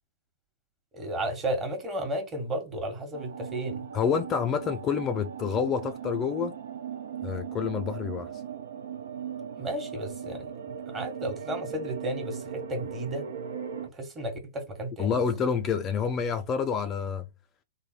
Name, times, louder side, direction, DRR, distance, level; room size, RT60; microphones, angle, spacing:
voice 1, 0.9-3.9 9.6-10.5 10.9-13.2 13.9-15.2, right 1 dB, 20° right, 1.2 m, -33 dB
sound 1, 3.1-13.9, right 8 dB, 70° right, 0.5 m, -38 dB
voice 2, 3.9-6.5 7.2-8.3 15.0-17.3, left 6 dB, 25° left, 0.4 m, -28 dB
3.3 x 2.1 x 4.2 m
hypercardioid pair, 120°, 0 cm